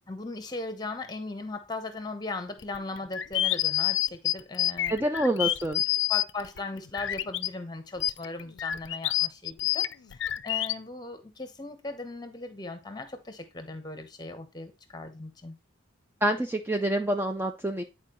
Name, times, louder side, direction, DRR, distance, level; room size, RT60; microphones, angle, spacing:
voice 1, 0.1-5.0 5.4-5.5 6.1-15.5, left 2 dB, 20° left, 8 dB, 0.9 m, -38 dB
sound 1, 2.6-7.5 8.0-10.7, left 14 dB, 70° left, 0.4 m, -28 dB
voice 2, 4.9-5.8 16.2-17.8, right 1 dB, 10° right, 5 dB, 0.4 m, -27 dB
9.8 x 4.5 x 3.0 m, 0.27 s
head